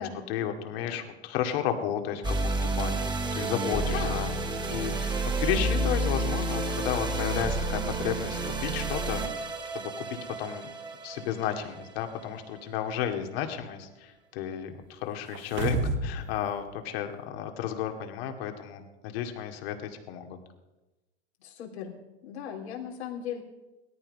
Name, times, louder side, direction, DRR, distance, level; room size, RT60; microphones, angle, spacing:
voice 1, 0.3-4.3 4.7-10.7 11.0-15.8 16.0-20.4, left 9 dB, 65° left, 5 dB, 2.3 m, -33 dB
sound 1, 2.2-12.6, right 2 dB, 15° right, 1.9 m, -30 dB
voice 2, 3.7-4.2 21.4-21.9 22.2-23.4, left 8 dB, 85° left, -1 dB, 3.7 m, -37 dB
sound 2, 15.3-16.2 16.6-16.7, right 3 dB, 35° right, 1.6 m, -29 dB
17.5 x 13.5 x 5.4 m, 1.1 s
hypercardioid pair, 115°, 32 cm